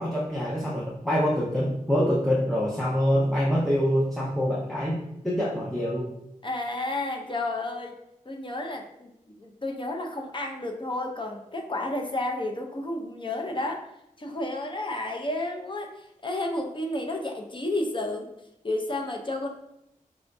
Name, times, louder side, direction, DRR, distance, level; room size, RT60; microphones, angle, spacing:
voice 1, 0.0-6.1, equal, ahead, -6 dB, 0.7 m, -25 dB
voice 2, 6.4-8.0 8.3-13.9 14.2-18.3 18.6-19.5, left 2 dB, 35° left, 2 dB, 0.6 m, -31 dB
4.9 x 2.6 x 3.4 m, 0.83 s
wide cardioid pair, 100°, 14 cm